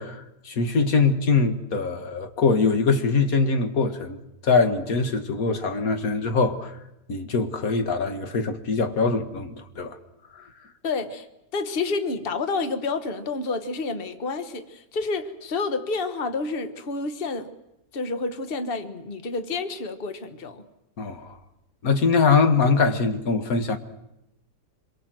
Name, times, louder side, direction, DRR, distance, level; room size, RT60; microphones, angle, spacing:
voice 1, 0.0-4.2 4.4-6.7 7.1-10.0 21.0-21.4 21.8-23.8, left 4 dB, 55° left, 2.1 m, -22 dB
voice 2, 10.8-11.3 11.5-17.5 17.9-20.6, left 3 dB, 35° left, 1.5 m, -29 dB
26.5 x 22.5 x 7.7 m
omnidirectional pair, 1.9 m